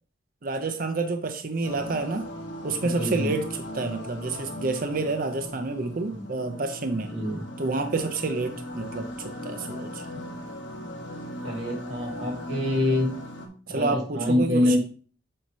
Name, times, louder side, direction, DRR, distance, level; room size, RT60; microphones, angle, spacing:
voice 1, 0.4-2.3 2.6-3.4 3.7-7.1 7.6-10.1 13.7-14.8, right 3 dB, 50° right, 6 dB, 0.6 m, -29 dB
sound 1, 1.6-13.5, left 1 dB, 85° left, 1.4 m, -38 dB
voice 2, 2.8-3.3 6.1-6.2 6.9-7.4 10.1-10.3 11.4-13.1 13.7-14.8, left 1 dB, 85° right, 1 dB, 2.2 m, -26 dB
7.6 x 2.9 x 5.4 m, 0.40 s
head